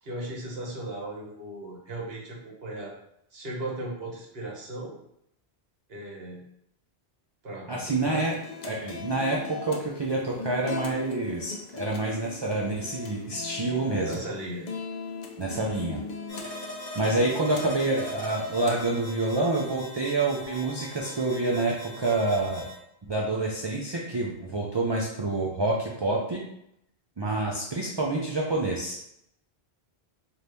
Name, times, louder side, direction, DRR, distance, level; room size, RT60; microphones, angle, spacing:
voice 1, 0.0-2.9 3.3-4.9 5.9-6.4 7.4-8.3 14.0-14.7, right 1 dB, 70° right, -2 dB, 1.3 m, -37 dB
voice 2, 7.7-8.4 8.6-14.2 15.4-16.0 16.4-16.5 17.0-22.7 23.1-26.4 27.2-29.0, right 2 dB, 45° right, -2 dB, 0.3 m, -27 dB
sound 1, 8.3-18.8, left 5 dB, 55° left, 0.5 m, -39 dB
sound 2, 16.3-22.8, equal, 20° left, 1.1 m, -41 dB
4.1 x 2.7 x 3.4 m, 0.77 s
omnidirectional pair, 1.1 m